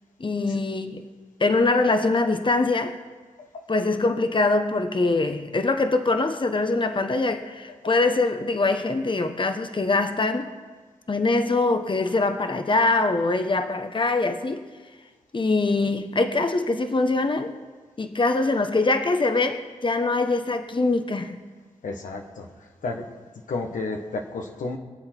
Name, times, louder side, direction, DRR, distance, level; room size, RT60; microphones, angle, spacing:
voice 1, 0.2-1.0 1.4-3.0 3.7-10.5 11.1-14.6 15.3-17.5 18.0-21.4, left 3 dB, 40° left, 1.1 m, -23 dB
voice 2, 21.8-22.5 22.8-23.0 23.5-24.8, left 3 dB, 80° left, 1.4 m, -31 dB
23.0 x 7.6 x 4.6 m
cardioid pair, 40°, 13 cm